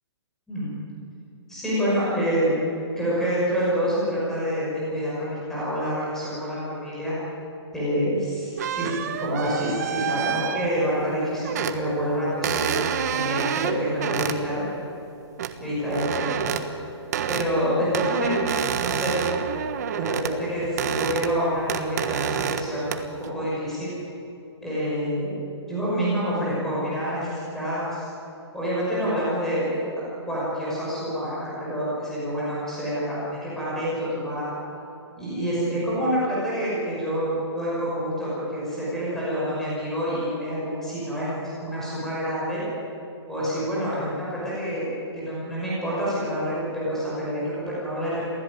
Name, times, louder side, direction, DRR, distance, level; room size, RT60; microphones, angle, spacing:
voice 1, 1.5-2.5 3.0-7.2 7.7-8.9 9.2-12.7 13.1-14.6 15.6-16.6 17.3-18.5 18.8-19.2 19.9-22.9 23.2-23.9 24.6-25.4 25.7-28.1 28.5-29.8 30.3-34.5 35.2-41.3 41.6-42.6 43.3-44.9 45.1-48.2, equal, 5° left, -9 dB, 5.7 m, -27 dB
sound 1, 8.6-11.0 11.4-11.8 12.4-14.4 15.4-15.5 15.9-16.6 17.1-17.5 17.9-20.4 20.6-21.4 21.7-22.6 22.9-23.3, right 8 dB, 35° right, 1.4 m, -28 dB
27.0 x 17.0 x 9.6 m, 2.9 s
hypercardioid pair, 175°, 15 cm